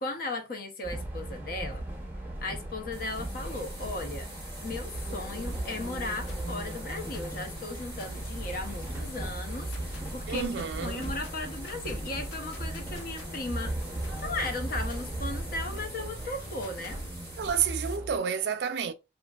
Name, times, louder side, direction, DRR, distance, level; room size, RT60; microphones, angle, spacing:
voice 1, 0.0-1.8 2.4-4.3 4.6-13.8 14.2-17.0, left 2 dB, 50° left, 0.6 m, -36 dB
sound 1, 0.8-18.2, right 1 dB, 10° right, 0.6 m, -37 dB
sound 2, 2.9-18.0, equal, 15° left, 1.0 m, -47 dB
sound 3, 6.3-17.1, left 2 dB, 90° left, 0.7 m, -49 dB
voice 2, 10.3-11.1 17.4-18.9, right 7 dB, 60° right, 0.3 m, -30 dB
3.1 x 2.4 x 2.2 m
head